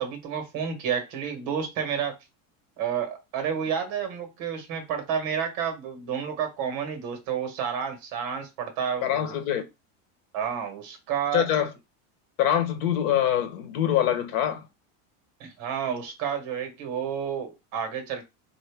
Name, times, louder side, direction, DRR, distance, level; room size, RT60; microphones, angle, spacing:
voice 1, 0.0-2.1 2.8-9.4 10.3-11.5 15.4-18.2, right 7 dB, 50° right, 1.3 m, -30 dB
voice 2, 9.0-9.6 11.3-11.7 12.4-14.6, left 10 dB, 80° left, 1.1 m, -24 dB
4.1 x 2.7 x 3.4 m
cardioid pair, 175°, 41 cm